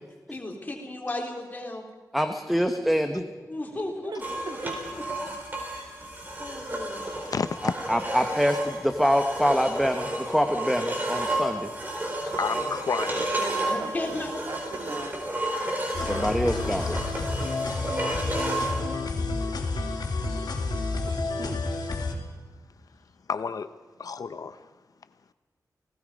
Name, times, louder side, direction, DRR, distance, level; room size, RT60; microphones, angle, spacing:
voice 1, 0.3-1.8 3.5-4.1 4.5-4.6 5.7-6.0 6.4-7.1 12.3-12.7 13.7-14.3 14.7-15.0, left 2 dB, 25° left, 0 dB, 3.8 m, -35 dB
voice 2, 2.1-3.2 7.6-11.7 16.1-17.0, equal, ahead, 6 dB, 1.0 m, -25 dB
voice 3, 4.0-4.8 13.2-15.2 21.1-21.6, right 4 dB, 75° right, 5 dB, 2.0 m, -40 dB
sound 1, 4.2-18.8, right 1 dB, 25° right, 4.5 m, -32 dB
voice 4, 7.3-7.7 12.4-13.3 23.3-23.7 24.0-24.7, left 5 dB, 65° left, 12 dB, 0.7 m, -30 dB
sound 2, 15.9-22.1, left 3 dB, 90° left, 3.0 m, -30 dB
29.0 x 18.0 x 5.2 m, 1.3 s
wide cardioid pair, 140°, 7 cm